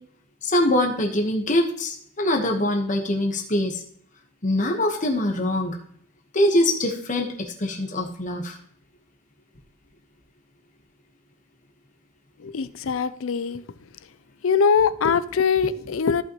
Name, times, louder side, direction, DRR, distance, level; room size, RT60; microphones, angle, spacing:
voice 1, 0.4-3.8 4.4-5.7 6.3-8.6, left 1 dB, 40° left, 2 dB, 1.1 m, -23 dB
voice 2, 12.4-13.6 14.4-16.2, left 6 dB, 85° left, 16 dB, 0.5 m, -22 dB
14.0 x 5.6 x 3.0 m, 0.65 s
head